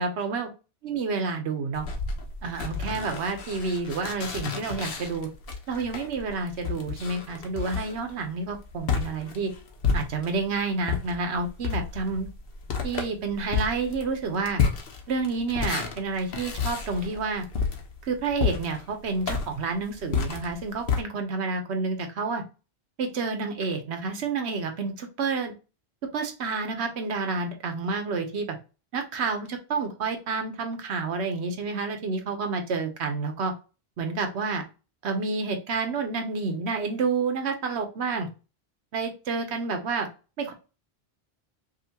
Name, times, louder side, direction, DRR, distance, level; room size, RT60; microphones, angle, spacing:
voice 1, 0.0-0.5 0.8-1.8 2.4-5.3 5.7-9.5 9.9-12.3 12.8-14.6 15.1-17.4 18.0-22.4 23.0-25.5 26.1-28.6 28.9-33.5 34.0-34.6 35.0-38.3 38.9-40.1 40.4-40.5, right 4 dB, 85° right, 6 dB, 1.1 m, -29 dB
sound 1, 1.7-10.5 10.8-21.0, left 5 dB, 65° left, 1.0 m, -31 dB
5.3 x 2.5 x 2.8 m, 0.32 s
omnidirectional pair, 1.1 m